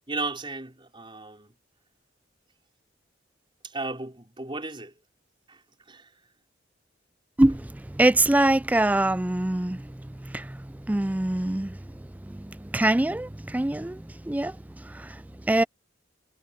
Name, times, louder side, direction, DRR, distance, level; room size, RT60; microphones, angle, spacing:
voice 1, 0.1-1.5 3.6-4.9 5.5-5.6 5.9-6.2, right 3 dB, 25° right, 4.8 m, -35 dB
voice 2, 7.4-11.8 12.2-15.6, right 1 dB, 10° right, 0.3 m, -25 dB
head